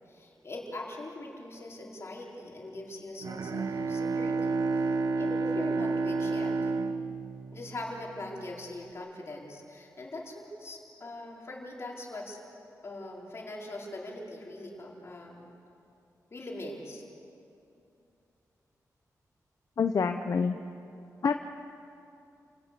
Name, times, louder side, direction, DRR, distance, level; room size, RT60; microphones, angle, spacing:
voice 1, 0.1-6.8 7.5-12.4 12.8-15.5 16.3-17.0, left 2 dB, 45° left, -3 dB, 4.6 m, -42 dB
Bowed string instrument, 3.2-8.2, right 3 dB, 85° right, 1.1 m, -30 dB
voice 2, 19.8-20.6 21.2-21.3, left 5 dB, 65° left, 7 dB, 0.9 m, -26 dB
29.5 x 17.5 x 6.9 m, 2.7 s
wide cardioid pair, 120°, 6 cm